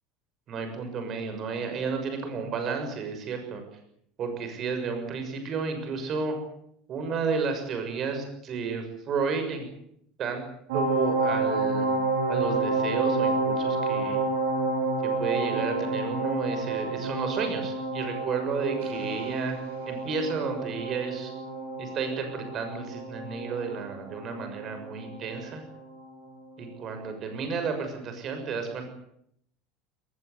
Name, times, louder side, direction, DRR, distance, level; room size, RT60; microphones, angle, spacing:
voice 1, 0.5-3.6 4.2-6.4 6.9-9.7 10.2-10.4 10.7-11.9 12.3-14.2 15.0-19.6 19.8-21.3 21.8-25.6 26.6-28.9, right 5 dB, 35° right, 6 dB, 6.6 m, -32 dB
sound 1, 10.7-26.3 26.6-26.7, right 3 dB, 80° right, 7.7 m, -29 dB
21.5 x 20.0 x 9.7 m, 0.73 s
cardioid pair, 160°, 0 cm